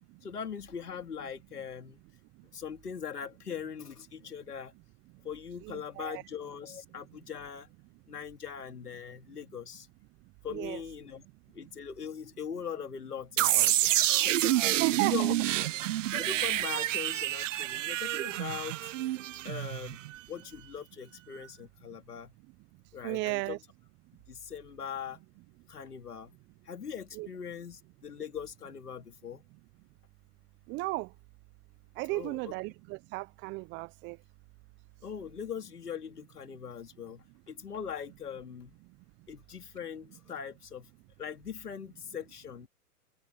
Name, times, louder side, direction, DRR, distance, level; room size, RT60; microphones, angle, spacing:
voice 1, 0.2-2.0 2.5-4.7 5.2-7.7 8.1-9.9 10.4-11.2 11.5-14.0 14.2-15.4 16.1-18.9 19.4-20.0 20.3-22.3 22.9-23.6 24.3-25.2 25.7-26.3 26.7-29.4 32.1-32.5 35.0-38.7 39.3-40.9 41.2-42.7, left 7 dB, 85° left, 3.0 m, -41 dB
voice 2, 5.6-6.2 10.5-10.8 14.8-15.3 23.0-23.6 27.1-27.3 30.7-31.1 32.0-34.2, right 23 dB, 25° right, 0.9 m, -35 dB
sound 1, 13.4-20.2, right 14 dB, 55° right, 0.7 m, -28 dB
hypercardioid pair, 125°, 45 cm